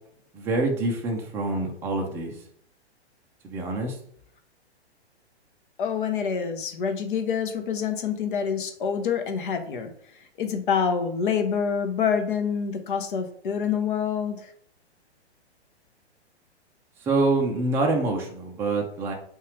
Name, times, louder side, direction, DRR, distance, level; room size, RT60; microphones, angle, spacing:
voice 1, 0.3-2.4 3.4-4.0 17.0-19.1, right 2 dB, 5° right, 1 dB, 0.4 m, -26 dB
voice 2, 5.8-9.9 10.4-14.5, left 7 dB, 50° left, 6 dB, 0.9 m, -26 dB
5.4 x 2.5 x 3.1 m, 0.65 s
figure-of-eight pair, 115°, 33 cm